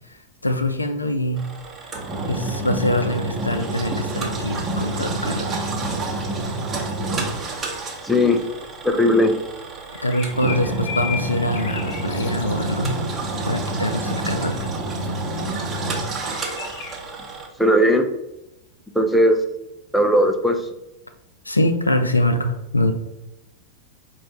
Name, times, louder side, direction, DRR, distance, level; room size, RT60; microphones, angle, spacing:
voice 1, 0.4-1.4 2.3-5.7 10.0-13.0 13.5-14.7 21.5-22.9, left 1 dB, 85° left, 7 dB, 0.4 m, -23 dB
Engine, 1.4-17.5, right 2 dB, 25° right, 1.1 m, -28 dB
voice 2, 8.0-8.4 8.8-9.4 17.6-18.1 18.9-19.4 19.9-20.6, equal, ahead, 5 dB, 0.5 m, -17 dB
sound 1, 9.9-13.1 16.0-17.0, left 7 dB, 55° left, 0.7 m, -35 dB
4.3 x 2.6 x 4.6 m, 0.91 s
figure-of-eight pair, 90°, 0 cm